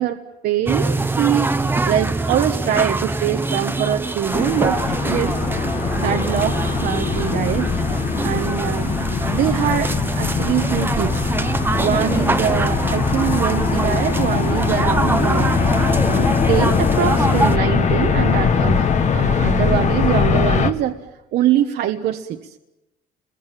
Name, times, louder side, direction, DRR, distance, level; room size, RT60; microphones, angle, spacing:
voice 1, 0.0-1.5 1.8-5.4 5.9-7.7 8.2-9.0 9.3-11.3 11.8-15.7 16.1-21.0 21.3-22.5, right 10 dB, 70° right, 4 dB, 1.3 m, -23 dB
sound 1, 0.7-17.6, right 3 dB, 10° right, 1.0 m, -24 dB
sound 2, 4.3-20.7, left 6 dB, 45° left, 1.7 m, -21 dB
29.0 x 22.5 x 7.5 m, 0.99 s
cardioid pair, 110°, 17 cm